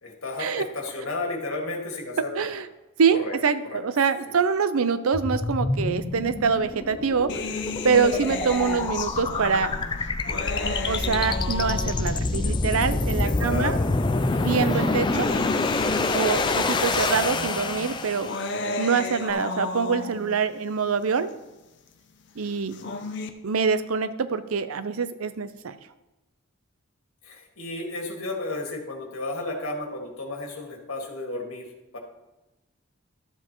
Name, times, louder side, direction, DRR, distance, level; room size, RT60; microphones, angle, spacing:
voice 1, 0.0-2.5 3.1-3.4 3.6-3.8 4.3-4.4 12.3-12.5 13.2-14.0 15.3-15.5 22.6-23.0 27.2-31.7 31.9-32.0, left 2 dB, 90° left, 0 dB, 1.9 m, -33 dB
voice 2, 2.2-2.6 3.0-7.4 7.8-9.7 10.9-13.8 14.3-15.3 16.1-18.4 18.8-21.3 22.4-22.8 23.4-25.8, right 5 dB, 90° right, 12 dB, 0.6 m, -25 dB
sound 1, 5.1-18.5, left 3 dB, 20° left, 0.3 m, -27 dB
sound 2, 7.3-12.4 13.3-13.4 14.5-20.4 22.5-23.3, left 3 dB, 55° left, 0.7 m, -33 dB
12.5 x 7.6 x 3.0 m, 1.0 s
head